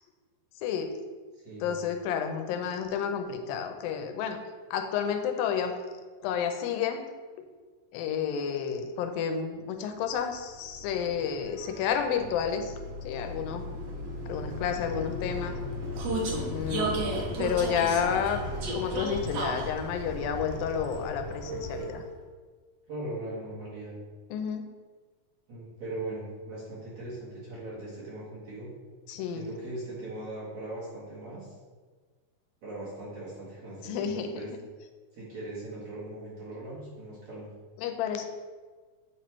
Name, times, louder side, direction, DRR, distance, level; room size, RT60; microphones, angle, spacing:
voice 1, 0.6-0.9 1.6-4.4 4.7-5.8 6.2-7.0 7.9-12.8 13.0-13.7 14.3-15.6 16.5-17.1 17.4-18.4 18.8-22.0 24.3-24.6 29.1-29.5 33.8-34.6 37.8-38.3, left 7 dB, 90° left, 6 dB, 2.4 m, -30 dB
voice 2, 1.4-1.7 22.9-23.9 25.5-28.7 29.3-31.5 32.6-34.5 35.1-37.5, right 2 dB, 50° right, -8 dB, 2.4 m, -39 dB
Vehicle, 10.3-22.2, equal, 70° right, 1.6 m, -34 dB
8.2 x 3.1 x 4.4 m, 1.5 s
omnidirectional pair, 4.0 m